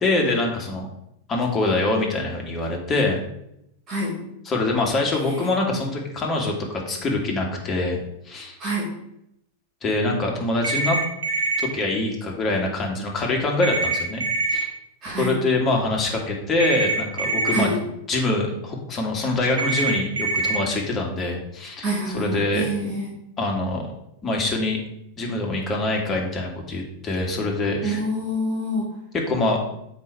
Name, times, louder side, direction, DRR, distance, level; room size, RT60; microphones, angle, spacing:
voice 1, 0.0-0.9 1.3-3.2 4.5-8.0 8.2-8.6 9.8-11.0 11.6-14.2 14.5-14.7 15.2-17.7 18.1-22.7 23.4-23.9 24.2-24.8 25.2-28.0 29.1-29.6, left 2 dB, 25° left, 0 dB, 2.1 m, -24 dB
sound 1, 10.6-11.6 13.6-14.6 16.6-17.6 19.6-20.6, right 3 dB, 65° right, 1.2 m, -24 dB
voice 2, 15.0-15.4 17.5-17.8 21.8-23.1 27.8-28.9, right 1 dB, 30° right, -5 dB, 2.2 m, -27 dB
7.4 x 5.2 x 4.7 m, 0.79 s
figure-of-eight pair, 90°, 0 cm